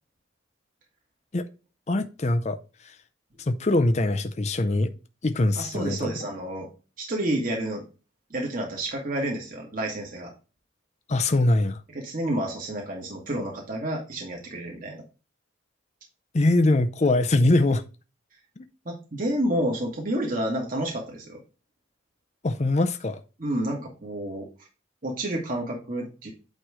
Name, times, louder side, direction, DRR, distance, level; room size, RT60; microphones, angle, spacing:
voice 1, 1.9-2.6 3.4-4.9 5.2-6.1 11.1-11.8 16.3-17.8 18.6-18.7 22.4-23.2, left 2 dB, 35° left, 0.5 m, -22 dB
voice 2, 5.5-6.7 7.0-7.8 8.3-10.3 11.9-15.0 18.8-21.4 23.4-24.5 25.0-26.3, right 1 dB, 40° right, 1.5 m, -29 dB
8.9 x 3.1 x 4.8 m
head